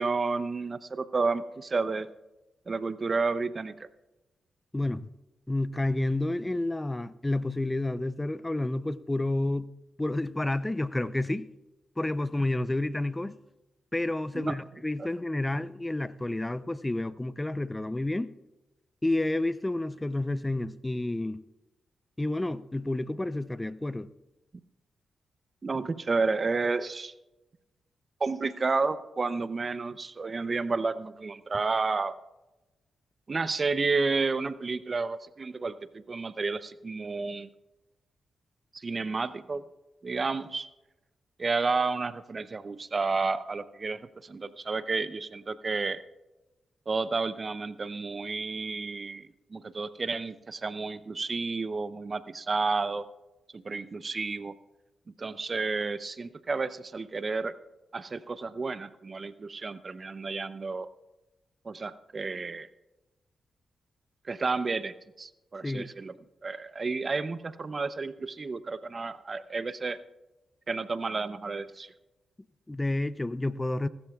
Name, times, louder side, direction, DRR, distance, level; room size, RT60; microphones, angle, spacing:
voice 1, 0.0-2.1 2.7-3.7 14.3-14.6 15.0-15.1 25.6-27.1 28.2-32.2 33.3-37.5 38.7-39.6 40.0-40.7 41.4-46.0 46.9-53.0 53.5-54.5 55.2-57.5 57.9-60.9 61.6-62.7 64.3-66.1 66.4-70.0 70.7-71.9, right 4 dB, 45° right, 0.7 m, -31 dB
voice 2, 4.7-5.1 5.5-9.7 10.0-11.5 12.0-13.3 13.9-18.3 19.0-21.4 22.2-24.1 65.6-65.9 72.7-73.9, left 2 dB, 20° left, 0.5 m, -30 dB
22.5 x 13.0 x 2.4 m
supercardioid pair, 45°, 0 cm